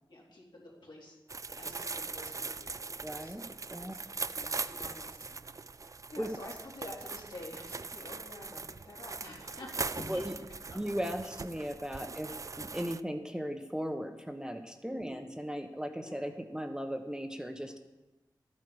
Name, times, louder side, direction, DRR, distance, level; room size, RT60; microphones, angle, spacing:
voice 1, 0.1-1.2 1.5-2.8 3.2-4.1 4.3-5.4 5.6-10.2 10.7-10.8 12.0-12.1 14.8-15.2 16.0-16.2, left 2 dB, 65° left, -3 dB, 2.8 m, -49 dB
sound 1, 1.3-13.0, right 4 dB, 40° right, 0.4 m, -41 dB
voice 2, 3.0-3.9 6.2-6.3 10.1-10.3 10.7-17.8, equal, 10° right, 5 dB, 0.9 m, -37 dB
13.0 x 8.7 x 4.8 m, 1.1 s
wide cardioid pair, 70°, 8 cm